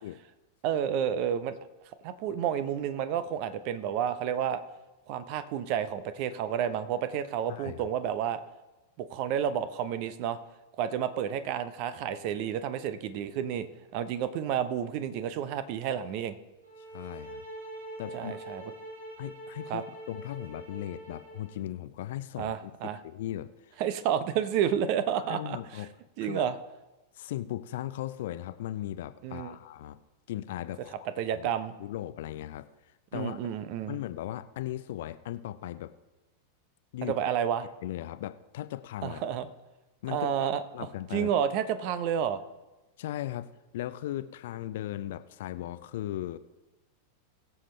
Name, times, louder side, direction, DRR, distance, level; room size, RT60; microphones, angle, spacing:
voice 1, 0.6-1.6 2.0-4.6 5.1-8.4 9.0-10.4 10.8-13.7 13.9-16.3 18.1-18.6 19.7-19.8 22.4-23.0 23.8-25.6 26.2-26.5 29.2-29.6 31.2-31.7 33.1-34.0 37.0-37.7 39.0-39.5 40.1-42.4, right 9 dB, 45° right, 12 dB, 0.9 m, -30 dB
voice 2, 7.5-7.8 16.8-17.4 18.0-18.4 19.2-23.8 25.2-25.9 26.2-26.5 27.1-30.0 30.3-31.0 31.4-31.5 31.8-32.7 33.1-33.4 33.9-35.9 36.9-37.2 37.8-39.3 40.0-40.4 40.7-41.3 43.0-43.5 43.7-46.4, left 13 dB, 55° left, 13 dB, 0.6 m, -37 dB
sound 1, 16.6-21.6, right 1 dB, 75° right, 2.5 m, -44 dB
21.5 x 7.2 x 3.3 m, 1.1 s
figure-of-eight pair, 90°, 0 cm